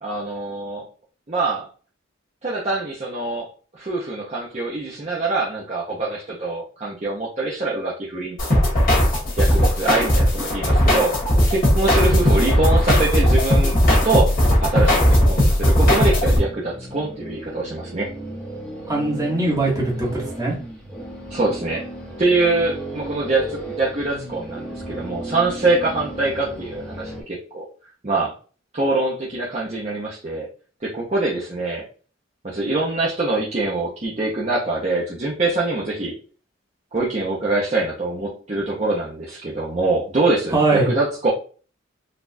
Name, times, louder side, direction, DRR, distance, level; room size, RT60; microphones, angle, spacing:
voice 1, 0.0-0.9 1.3-1.7 2.4-3.5 3.7-8.7 9.4-11.2 11.5-13.8 14.0-18.1 21.3-21.9 22.2-27.7 28.0-28.3 28.7-30.5 30.8-31.8 32.4-36.2 36.9-41.3, right 2 dB, 35° right, -6 dB, 0.6 m, -24 dB
sound 1, 8.4-16.4, equal, 45° left, 1.4 m, -17 dB
sound 2, 16.3-27.2, right 1 dB, 5° left, 0.8 m, -35 dB
voice 2, 18.9-20.5 40.5-40.9, right 2 dB, 15° right, -4 dB, 1.1 m, -21 dB
4.0 x 2.3 x 2.6 m, 0.39 s
head